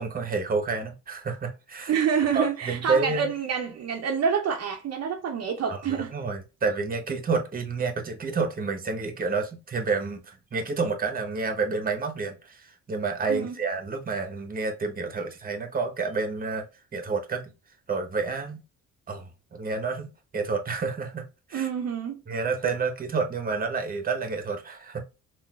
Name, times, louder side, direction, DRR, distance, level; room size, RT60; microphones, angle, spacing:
voice 1, 0.0-1.9 2.3-3.3 5.7-5.8 6.1-16.6 16.9-17.4 17.9-18.6 19.1-21.7 22.3-25.0, right 4 dB, 30° right, 0.9 m, -29 dB
voice 2, 1.9-6.1 13.3-13.6 21.5-22.2, right 7 dB, 55° right, 0.7 m, -27 dB
3.8 x 2.5 x 2.3 m
cardioid pair, 90°, 30 cm